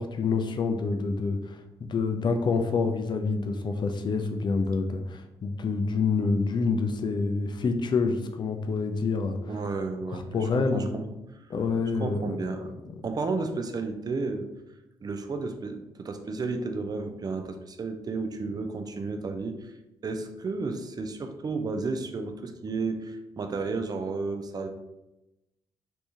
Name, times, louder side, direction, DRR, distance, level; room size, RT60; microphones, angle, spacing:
voice 1, 0.0-9.4 10.1-10.8 11.5-12.4 12.8-13.0, left 4 dB, 35° left, 6 dB, 0.5 m, -27 dB
voice 2, 9.5-11.1 12.0-12.7 13.0-14.5 15.0-19.7 20.0-24.7, right 3 dB, 30° right, 6 dB, 0.5 m, -32 dB
3.4 x 2.5 x 2.8 m, 0.95 s
figure-of-eight pair, 45°, 13 cm